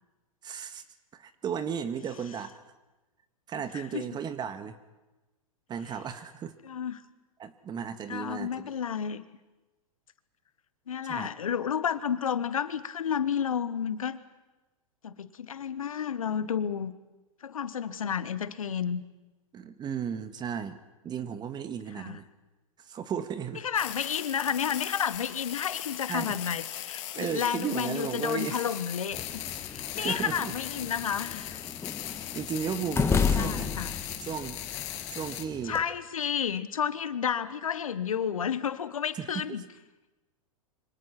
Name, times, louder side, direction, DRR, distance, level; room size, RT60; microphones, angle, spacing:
voice 1, 0.4-0.8 1.1-2.6 3.5-4.8 5.7-6.5 7.4-8.7 11.0-11.3 19.5-20.8 21.0-22.2 22.8-23.6 26.1-26.4 27.1-28.6 30.0-30.5 32.3-33.9 34.2-34.6 35.1-35.8 39.1-39.6, right 7 dB, 25° right, 11 dB, 1.8 m, -35 dB
voice 2, 3.7-4.1 6.6-7.0 8.1-9.2 10.9-14.2 15.0-16.9 17.4-19.0 22.0-22.2 23.6-31.7 33.3-34.0 35.7-39.6, left 8 dB, 75° left, 14 dB, 1.4 m, -31 dB
sound 1, 23.7-35.4, left 13 dB, 55° left, 2.7 m, -39 dB
sound 2, 29.1-35.8, left 5 dB, 15° left, 1.6 m, -33 dB
27.0 x 25.0 x 6.0 m, 1.1 s
hypercardioid pair, 105°, 18 cm